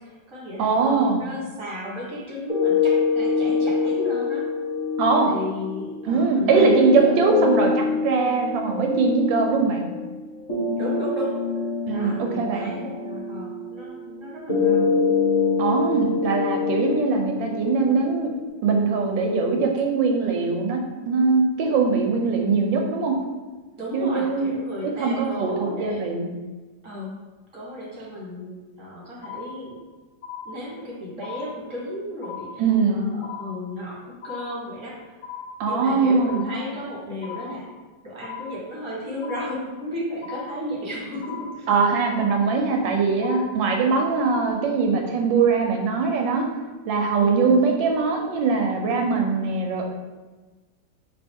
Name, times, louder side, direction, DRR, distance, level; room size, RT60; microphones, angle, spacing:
voice 1, 0.0-4.4 5.2-7.2 10.8-11.4 11.9-14.9 23.8-26.0 26.8-27.1 27.5-29.8 30.4-32.6 32.9-35.2 35.6-37.7 38.0-41.7 47.2-47.6, left 1 dB, 20° right, -5 dB, 1.2 m, -34 dB
voice 2, 0.6-1.2 5.0-5.3 6.0-9.9 11.9-12.7 15.6-18.3 18.6-23.2 23.9-24.5 25.0-26.3 32.6-33.1 35.6-36.5 41.7-46.5 46.9-49.9, right 4 dB, 90° right, 2 dB, 1.4 m, -21 dB
sound 1, 2.5-18.5, left 4 dB, 25° left, 1.0 m, -25 dB
sound 2, 29.2-29.9 30.2-30.9 31.2-31.9 32.2-32.9 33.2-33.9 34.2-34.9 35.2-35.9 36.2-36.9 37.2-37.9 38.2-38.9 39.2-39.9 40.2-40.9 41.2-41.9 42.2-42.9 43.2-43.9 44.2-44.5, left 7 dB, 80° left, 1.4 m, -38 dB
5.1 x 2.8 x 3.5 m, 1.3 s
omnidirectional pair, 2.0 m